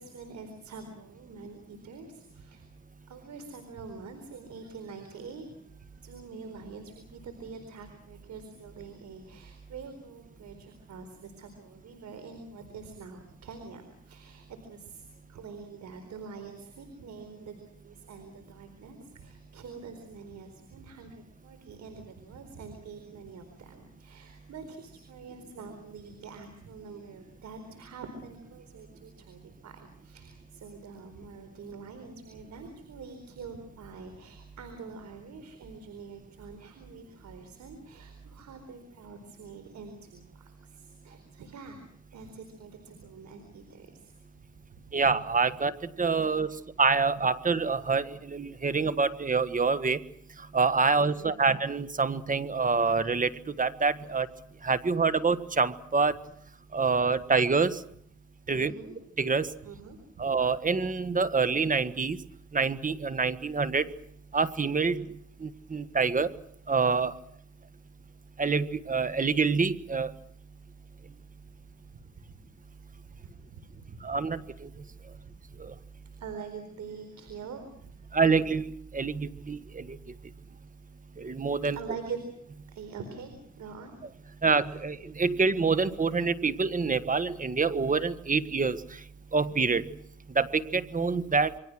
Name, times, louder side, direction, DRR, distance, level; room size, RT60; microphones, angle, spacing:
voice 1, 0.0-2.7 3.1-41.8 42.1-44.1 44.7-45.0 46.4-46.6 50.9-51.4 58.5-59.0 59.6-60.2 72.3-72.4 73.2-74.2 75.1-75.2 75.5-75.6 76.2-78.2 81.7-82.3 82.7-84.0, right 5 dB, 65° right, 7 dB, 4.3 m, -45 dB
voice 2, 44.9-45.7 46.0-46.5 46.8-50.0 50.5-53.3 53.6-54.3 54.6-56.1 56.7-57.8 58.5-58.7 59.2-59.5 60.2-62.2 62.5-63.9 64.3-65.0 65.4-66.3 66.7-67.1 68.4-70.1 74.0-74.7 78.1-80.0 81.2-81.8 84.4-88.8 89.3-89.9 90.3-91.5, right 4 dB, 25° right, 13 dB, 1.6 m, -26 dB
28.0 x 23.0 x 6.3 m, 0.66 s
cardioid pair, 90°, 30 cm